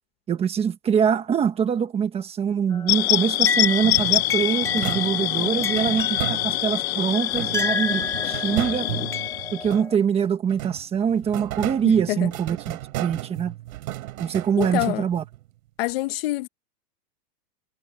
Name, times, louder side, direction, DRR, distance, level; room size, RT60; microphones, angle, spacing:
voice 1, 0.3-8.9 9.5-13.5 14.2-15.2, right 7 dB, 10° right, 1.3 m, -24 dB
sound 1, 2.7-10.0, left 4 dB, 5° left, 1.8 m, -31 dB
sound 2, 2.9-9.7, left 17 dB, 60° left, 0.6 m, -25 dB
sound 3, 3.8-6.9 7.3-10.1 10.5-15.4, right 16 dB, 55° right, 3.5 m, -34 dB
voice 2, 11.8-12.3 14.6-15.1 15.8-16.5, left 18 dB, 35° left, 1.0 m, -26 dB
supercardioid pair, 175°, 50 cm